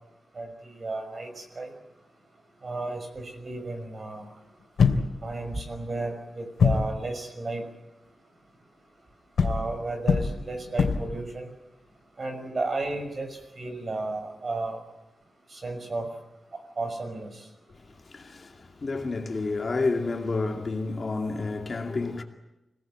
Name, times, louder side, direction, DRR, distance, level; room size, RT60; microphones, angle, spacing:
voice 1, 0.3-1.7 2.6-4.3 5.2-7.6 9.4-11.5 12.2-14.8 15.5-16.1 16.5-17.5, right 2 dB, 40° right, 6.0 m, -33 dB
sound 1, 4.8-5.5 6.6-7.0 9.4-11.2, left 5 dB, 85° left, 2.8 m, -23 dB
voice 2, 17.7-22.2, left 3 dB, 40° left, 2.4 m, -30 dB
27.0 x 18.5 x 9.1 m
wide cardioid pair, 155°, 0 cm